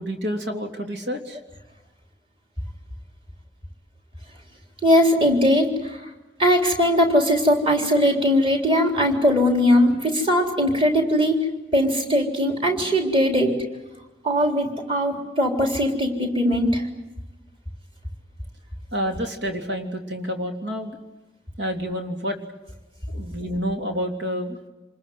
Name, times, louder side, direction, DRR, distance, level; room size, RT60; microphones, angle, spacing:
voice 1, 0.0-1.4 18.9-21.0 21.6-22.4 23.1-24.6, equal, 85° right, 3 dB, 3.3 m, -28 dB
voice 2, 4.8-6.1 6.4-11.4 11.7-13.5 14.2-16.8, equal, 30° right, 3 dB, 3.8 m, -20 dB
27.0 x 21.5 x 9.4 m, 1.1 s
head